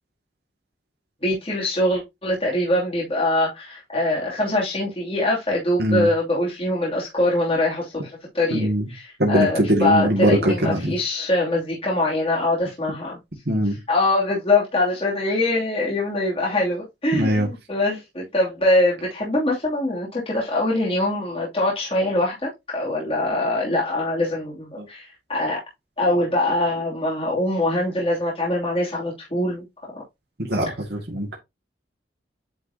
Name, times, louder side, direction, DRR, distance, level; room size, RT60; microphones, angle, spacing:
voice 1, 1.2-8.1 8.3-13.2 13.9-25.6 26.0-29.6, left 1 dB, 30° left, 2.8 m, -23 dB
voice 2, 8.5-8.9 9.2-11.0 13.5-13.8 17.1-17.5 24.8-24.9 30.4-31.4, equal, 65° right, 2.2 m, -21 dB
9.7 x 4.7 x 2.8 m
head